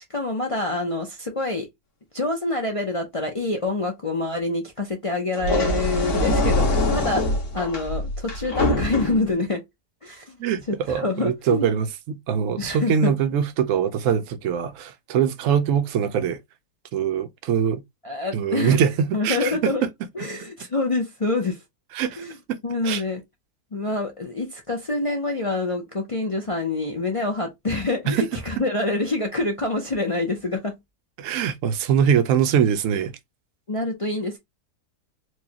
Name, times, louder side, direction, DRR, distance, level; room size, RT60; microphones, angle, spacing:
voice 1, 0.1-1.7 2.1-7.3 7.5-9.6 10.0-10.3 10.7-11.7 12.6-13.1 18.0-18.8 19.1-19.8 20.1-21.6 22.1-22.4 22.6-23.2 23.7-30.7 33.7-34.4, left 2 dB, 50° left, 0.3 m, -26 dB
sound 1, 5.3-9.3, left 1 dB, 70° left, 1.8 m, -23 dB
voice 2, 10.4-16.4 16.9-17.8 18.3-19.9 21.9-22.2 22.5-22.6 22.8-23.0 28.1-28.3 31.2-33.1, right 8 dB, 65° right, 0.9 m, -23 dB
4.5 x 2.2 x 2.8 m
omnidirectional pair, 1.7 m